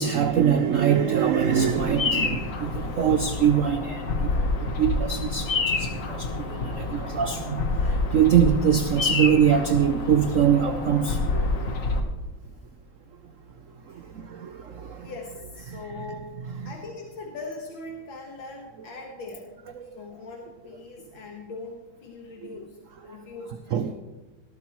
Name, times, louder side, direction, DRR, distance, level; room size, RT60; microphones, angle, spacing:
voice 1, 0.0-11.5 13.9-15.1 15.7-15.8 19.8-19.9 22.4-22.5 23.7-23.9, right 8 dB, 75° right, 8 dB, 0.7 m, -24 dB
Bird vocalization bird call bird song, 1.5-12.0, left 3 dB, 45° left, 1.4 m, -28 dB
voice 2, 14.7-16.4 16.6-19.5 20.0-23.6 23.9-24.0, left 3 dB, 75° left, 0 dB, 2.2 m, -40 dB
18.0 x 13.5 x 3.1 m, 1.1 s
omnidirectional pair, 2.2 m